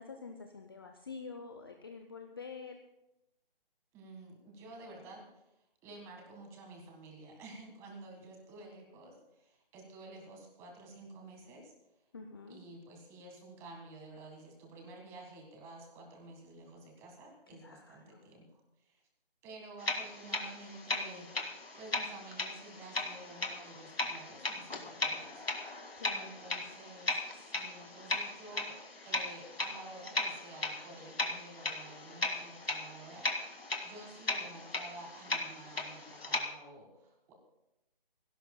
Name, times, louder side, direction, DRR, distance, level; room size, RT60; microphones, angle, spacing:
voice 1, 0.0-2.8 12.1-12.6 17.5-18.3 26.0-26.4, left 5 dB, 25° left, 4 dB, 0.6 m, -47 dB
voice 2, 3.9-5.4 5.8-11.7 12.5-19.0 19.4-25.4 26.1-28.8 29.0-37.3, right 2 dB, 10° right, 2 dB, 1.6 m, -51 dB
sound 1, 19.8-36.4, left 2 dB, 85° left, 2.2 m, -37 dB
24.5 x 16.5 x 2.2 m, 0.88 s
figure-of-eight pair, 160°, 29 cm